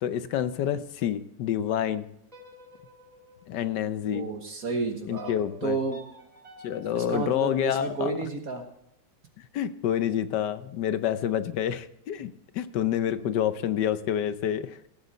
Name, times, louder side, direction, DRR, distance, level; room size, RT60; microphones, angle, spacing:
voice 1, 0.0-2.1 3.5-4.3 5.1-5.8 6.6-8.1 9.5-14.8, left 10 dB, 70° left, 13 dB, 1.3 m, -28 dB
sound 1, 2.2-4.4 5.1-8.3, equal, 20° right, 2.4 m, -51 dB
voice 2, 4.1-5.3 5.6-6.0 7.0-8.7, right 4 dB, 55° right, 5 dB, 1.6 m, -31 dB
17.0 x 8.0 x 4.2 m, 0.81 s
omnidirectional pair, 2.0 m